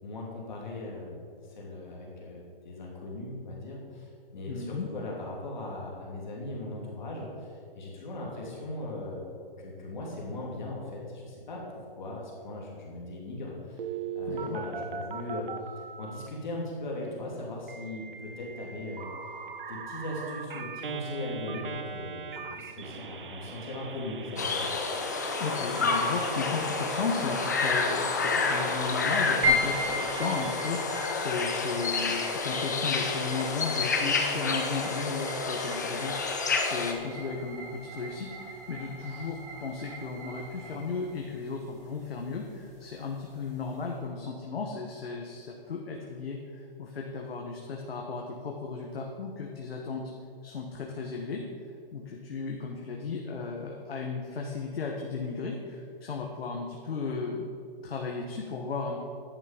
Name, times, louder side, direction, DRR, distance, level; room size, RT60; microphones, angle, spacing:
voice 1, 0.0-1.2 1.5-9.2 9.6-15.5 16.0-19.1 19.7-24.7, left 2 dB, 50° left, -3 dB, 2.8 m, -39 dB
voice 2, 4.5-4.9 14.2-14.6 25.4-50.1 50.4-51.5 51.9-57.5 57.8-59.0, left 4 dB, 85° left, 0 dB, 1.5 m, -35 dB
Telephone, 13.8-16.3 17.7-30.5, right 6 dB, 60° right, 1.0 m, -40 dB
sound 1, 24.4-36.9, left 4 dB, 20° left, 0.5 m, -29 dB
sound 2, 29.4-43.9, left 1 dB, 30° right, 2.1 m, -37 dB
10.5 x 8.7 x 5.2 m, 2.3 s
hypercardioid pair, 175°, 29 cm